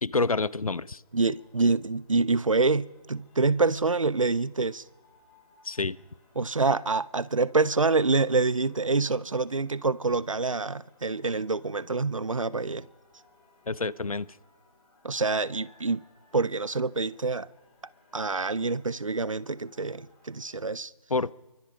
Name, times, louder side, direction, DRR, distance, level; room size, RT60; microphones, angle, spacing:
voice 1, 0.0-1.0 5.6-6.0 13.7-14.3 21.1-21.3, left 3 dB, 65° left, 1.0 m, -28 dB
sound 1, 1.0-20.6, left 3 dB, 5° left, 1.1 m, -63 dB
voice 2, 1.1-4.8 6.4-12.9 15.0-16.0 16.3-17.5 18.1-20.9, right 3 dB, 55° right, 0.9 m, -26 dB
28.5 x 24.0 x 5.1 m
figure-of-eight pair, 175°, 20 cm